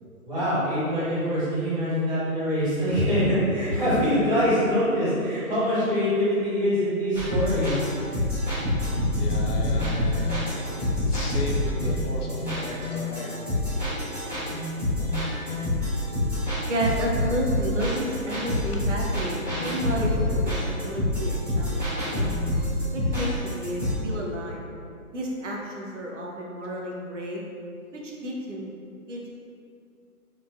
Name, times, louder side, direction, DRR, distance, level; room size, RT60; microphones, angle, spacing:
voice 1, 0.2-7.8, equal, 30° right, -14 dB, 1.4 m, -24 dB
sound 1, 7.1-24.0, left 1 dB, 10° right, 1.0 m, -27 dB
voice 2, 9.2-13.4, left 2 dB, 85° left, -2 dB, 0.7 m, -35 dB
voice 3, 16.7-22.4 22.9-24.6 25.1-27.4 27.9-28.7 29.1-29.3, right 1 dB, 55° right, -2 dB, 0.5 m, -31 dB
2.9 x 2.3 x 2.4 m, 2.4 s
hypercardioid pair, 170°, 45 cm